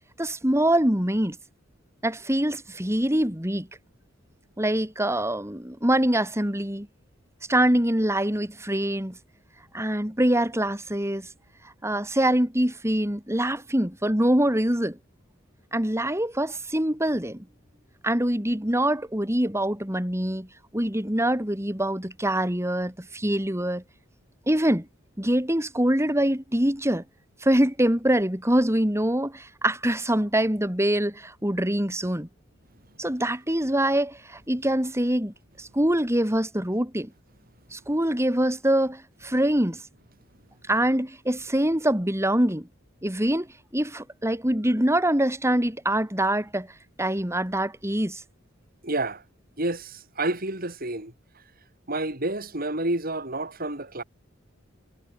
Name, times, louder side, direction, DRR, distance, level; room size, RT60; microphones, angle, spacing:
voice 1, 0.2-1.4 2.0-3.7 4.6-6.9 7.5-9.2 9.7-11.3 11.8-15.0 15.7-17.4 18.0-20.5 20.7-23.8 24.5-24.9 25.2-27.0 27.4-32.3 33.0-37.1 37.7-39.8 40.7-42.7 43.0-43.5 43.7-46.7 47.0-48.2, right 1 dB, 15° right, 4.1 m, -24 dB
voice 2, 48.8-49.2 49.6-51.1 51.9-54.0, right 2 dB, 50° right, 7.4 m, -29 dB
head